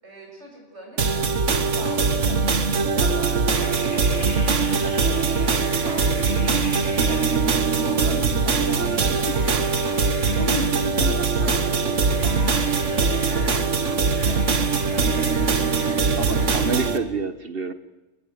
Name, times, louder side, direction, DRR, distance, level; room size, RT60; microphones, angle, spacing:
voice 1, 0.0-7.3 7.7-8.3 11.4-16.5, right 1 dB, 70° right, 8.0 m, -42 dB
sound 1, 1.0-17.0, right 4 dB, 85° right, 1.8 m, -22 dB
sound 2, 3.5-16.9, left 1 dB, 55° left, 4.9 m, -41 dB
voice 2, 7.8-9.5 10.0-11.7, left 2 dB, 20° left, 1.5 m, -34 dB
voice 3, 16.2-17.7, right 4 dB, 50° right, 1.6 m, -28 dB
29.5 x 19.5 x 8.1 m
omnidirectional pair, 1.2 m